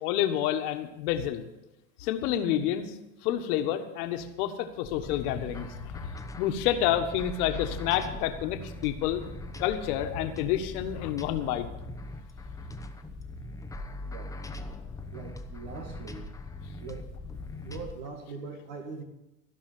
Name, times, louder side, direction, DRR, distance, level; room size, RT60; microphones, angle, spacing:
voice 1, 0.0-1.4 2.0-2.9 3.2-6.1 6.4-9.2 9.6-11.7, left 11 dB, 60° left, 7 dB, 1.6 m, -29 dB
sound 1, 4.8-17.9, left 2 dB, 5° left, 0.9 m, -41 dB
voice 2, 14.0-14.4 15.1-16.2 16.8-17.1 17.6-19.0, right 4 dB, 70° right, 4 dB, 2.0 m, -41 dB
15.5 x 5.5 x 9.4 m, 0.95 s
hypercardioid pair, 100°, 50 cm